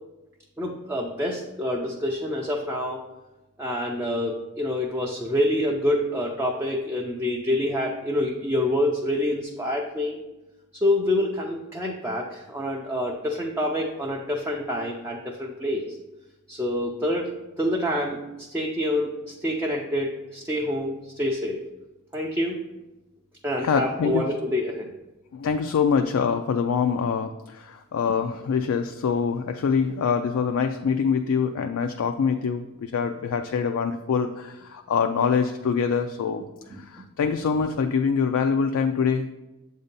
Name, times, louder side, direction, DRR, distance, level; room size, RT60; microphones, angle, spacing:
voice 1, 0.6-3.0 3.6-10.2 10.7-16.0 16.5-17.3 17.6-21.6 22.1-22.6 23.4-24.9 36.7-36.8, left 1 dB, 10° right, -1 dB, 0.4 m, -27 dB
voice 2, 23.6-24.3 25.3-36.4 36.9-39.3, left 6 dB, 65° left, 6 dB, 0.3 m, -24 dB
7.8 x 2.7 x 5.2 m, 1.0 s
head